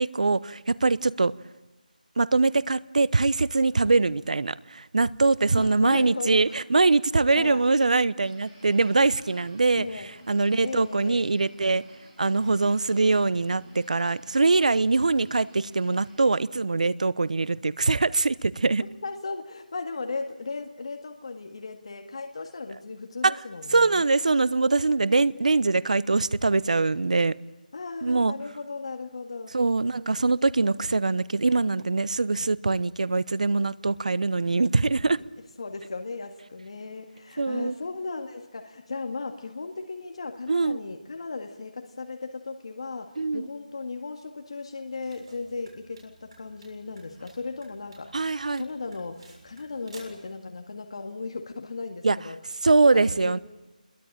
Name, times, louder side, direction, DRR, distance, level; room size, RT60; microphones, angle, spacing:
voice 1, 0.0-1.3 2.2-9.9 10.3-11.8 12.2-18.8 23.2-23.4 23.7-27.4 28.0-28.3 29.5-35.2 37.4-37.7 40.5-40.8 43.2-43.5 48.1-48.6 52.0-52.2 52.6-53.4, right 3 dB, 55° right, 19 dB, 0.9 m, -23 dB
voice 2, 5.6-6.6 7.3-7.6 9.8-10.1 10.6-11.3 19.0-24.0 27.7-29.5 35.6-52.4 52.9-53.4, left 3 dB, 45° left, 4 dB, 2.0 m, -36 dB
sound 1, 8.2-16.2, right 2 dB, 15° right, 6.4 m, -54 dB
sound 2, 44.8-50.3, right 2 dB, 40° right, 7.2 m, -53 dB
28.5 x 22.5 x 8.9 m, 1.1 s
figure-of-eight pair, 175°, 5 cm